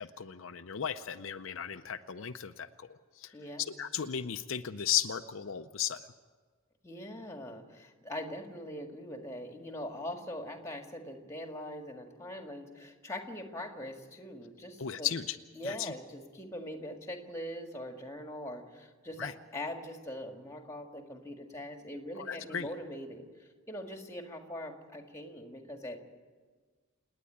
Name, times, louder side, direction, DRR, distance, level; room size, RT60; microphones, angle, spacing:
voice 1, 0.0-2.9 3.2-6.0 14.8-15.4 15.6-15.9 19.2-19.3 22.2-22.7, left 9 dB, 65° left, 8 dB, 0.6 m, -35 dB
voice 2, 6.8-15.1 15.6-26.0, left 1 dB, 15° left, 4 dB, 1.8 m, -42 dB
28.0 x 9.7 x 9.9 m, 1.4 s
head